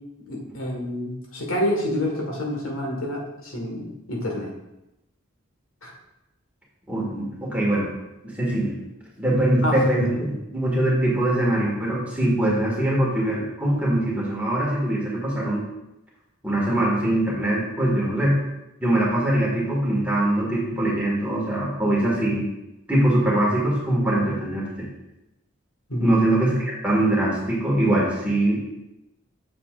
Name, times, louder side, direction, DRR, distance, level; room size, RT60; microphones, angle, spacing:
voice 1, 0.2-4.5 5.8-5.9 9.6-9.8 10.1-10.2 25.9-26.2, left 1 dB, 85° left, -1 dB, 1.7 m, -27 dB
voice 2, 6.9-7.9 8.2-8.8 9.2-15.7 16.4-18.4 18.8-22.5 22.9-24.9 26.0-28.6, right 1 dB, 5° right, -5 dB, 1.9 m, -22 dB
7.5 x 7.5 x 2.5 m, 0.93 s
head